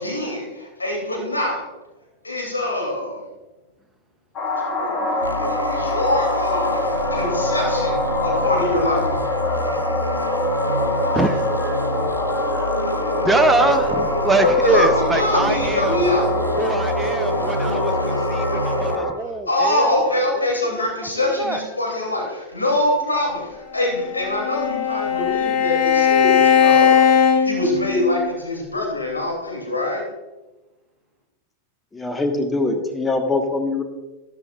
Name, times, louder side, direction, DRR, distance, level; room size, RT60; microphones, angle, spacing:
voice 1, 0.0-1.6 2.2-3.2 4.7-9.1 14.6-16.3 19.5-27.0 27.4-30.0, left 1 dB, 80° left, -1 dB, 2.9 m, -24 dB
sound 1, 4.4-19.1, left 1 dB, 30° left, 1.9 m, -24 dB
sound 2, 5.2-19.0, right 1 dB, 85° right, 0.6 m, -29 dB
voice 2, 11.1-11.5 12.5-12.9 13.2-16.0 16.6-20.4 20.8-21.6, right 3 dB, 5° right, 6 dB, 0.8 m, -24 dB
Bowed string instrument, 23.8-28.3, left 7 dB, 45° left, 1.4 m, -18 dB
voice 3, 31.9-33.8, left 3 dB, 10° left, 5 dB, 1.4 m, -23 dB
13.5 x 12.0 x 2.5 m, 1.1 s
figure-of-eight pair, 90°, 0 cm